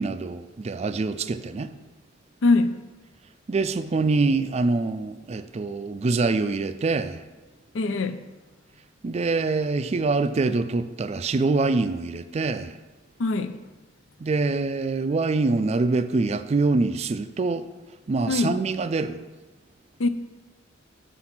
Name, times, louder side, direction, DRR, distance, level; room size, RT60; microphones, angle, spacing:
voice 1, 0.0-1.7 3.5-7.2 9.0-12.7 14.2-17.6 18.1-19.2, right 3 dB, 35° right, 0.4 m, -25 dB
voice 2, 2.4-2.7 7.7-8.2 13.2-13.6 18.3-18.6 20.0-20.1, left 3 dB, 75° left, 0.5 m, -22 dB
6.0 x 5.8 x 5.8 m
head